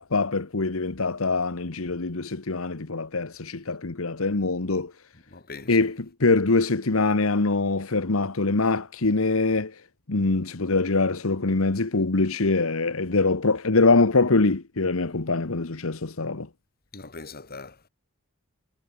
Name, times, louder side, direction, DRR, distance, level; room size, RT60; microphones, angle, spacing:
voice 1, 0.0-4.9 5.7-9.7 10.1-16.5, left 3 dB, 75° left, 1.2 m, -23 dB
voice 2, 5.3-5.8 16.9-17.9, left 4 dB, 45° left, 2.7 m, -41 dB
head